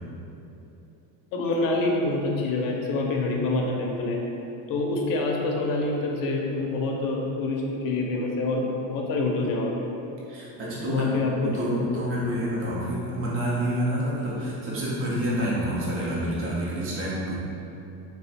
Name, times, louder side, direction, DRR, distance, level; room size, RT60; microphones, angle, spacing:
voice 1, 1.3-4.2 4.7-9.9 10.9-11.9, left 2 dB, 50° left, 0 dB, 0.5 m, -26 dB
voice 2, 10.3-17.3, equal, 30° right, -6 dB, 0.6 m, -28 dB
3.4 x 2.1 x 4.1 m, 2.9 s
cardioid pair, 145°, 46 cm